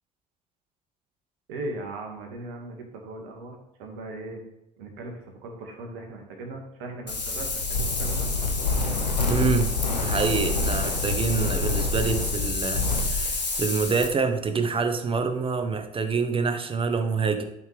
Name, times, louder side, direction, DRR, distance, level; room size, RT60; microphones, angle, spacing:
voice 1, 1.5-4.4 4.8-8.3, right 2 dB, 60° right, 2 dB, 2.1 m, -38 dB
Wind, 7.1-14.1, left 3 dB, 90° left, 1.1 m, -26 dB
voice 2, 9.3-9.7 10.0-17.4, right 5 dB, 25° right, 8 dB, 1.1 m, -26 dB
12.0 x 5.8 x 3.5 m, 0.92 s
figure-of-eight pair, 60°, 21 cm